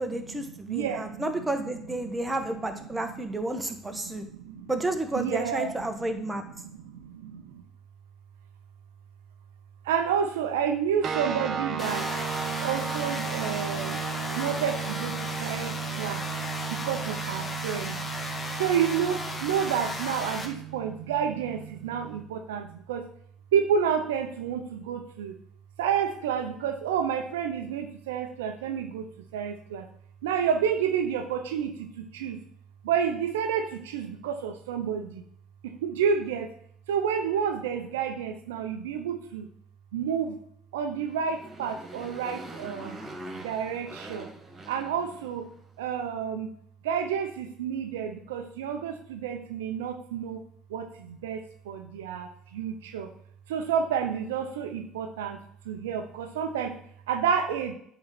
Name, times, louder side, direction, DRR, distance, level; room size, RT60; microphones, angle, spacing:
voice 1, 0.0-4.2 4.7-6.4, right 1 dB, 15° right, 5 dB, 1.4 m, -31 dB
voice 2, 0.7-1.2 3.0-3.1 4.0-4.7 5.1-5.7 6.8-7.6 9.8-12.1 12.6-14.0 14.4-16.2 16.7-18.0 18.6-23.1 23.5-25.4 25.8-29.1 29.3-29.9 30.2-32.4 32.8-35.2 35.6-36.5 36.9-39.5 39.9-40.4 40.7-43.0 43.4-44.3 44.7-45.5 45.8-46.5 46.8-50.4 50.7-53.1 53.5-55.4 55.6-56.7 57.1-57.7, right 7 dB, 80° right, 6 dB, 0.7 m, -30 dB
sound 1, 11.0-22.2, right 8 dB, 50° right, 1.1 m, -35 dB
sound 2, 11.8-20.4, left 2 dB, 25° left, 1.9 m, -35 dB
Motorcycle, 40.9-45.6, right 1 dB, 35° right, 2.5 m, -43 dB
8.6 x 3.9 x 6.0 m, 0.66 s
hypercardioid pair, 65°, 0 cm